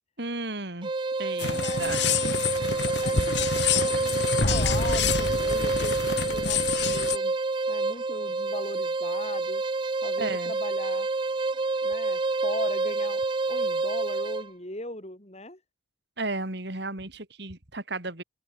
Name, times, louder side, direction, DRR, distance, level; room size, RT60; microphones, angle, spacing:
voice 1, 0.2-0.9 1.2-2.0 10.2-10.5 16.2-18.2, right 2 dB, 55° right, 3.4 m, -34 dB
sound 1, 0.8-14.5, right 3 dB, 25° right, 0.4 m, -28 dB
sound 2, 1.4-7.2, left 5 dB, 60° left, 2.6 m, -27 dB
voice 2, 1.5-2.3 3.0-7.4 7.7-9.6 10.0-11.1 11.8-13.2 13.5-15.6, left 2 dB, 30° left, 4.3 m, -39 dB
open air
head